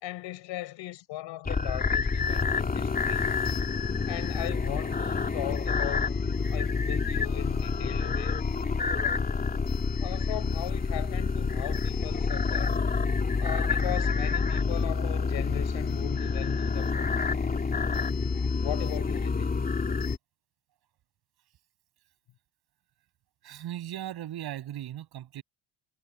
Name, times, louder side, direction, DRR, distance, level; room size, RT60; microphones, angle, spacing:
voice 1, 0.0-3.4 4.1-6.1 6.5-8.4 10.0-12.8 13.4-17.5 18.6-19.6, left 15 dB, 65° left, 4.4 m, -38 dB
sound 1, 1.4-20.2, left 4 dB, 20° left, 3.2 m, -28 dB
voice 2, 23.4-25.4, right 12 dB, 50° right, 7.5 m, -37 dB
cardioid pair, 170°, 47 cm